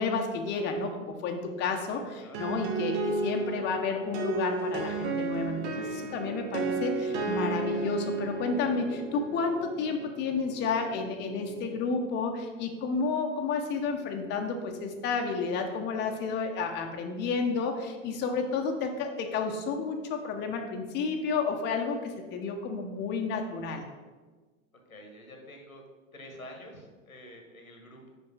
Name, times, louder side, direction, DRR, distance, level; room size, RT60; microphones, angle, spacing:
voice 1, 0.0-23.8, left 4 dB, 25° left, 3 dB, 0.7 m, -31 dB
voice 2, 1.8-2.5 24.9-25.8 26.1-28.1, left 1 dB, 85° left, 3 dB, 1.3 m, -48 dB
sound 1, 2.3-11.9, right 3 dB, 55° right, 1.1 m, -33 dB
5.6 x 5.2 x 4.7 m, 1.3 s
figure-of-eight pair, 90°, 41 cm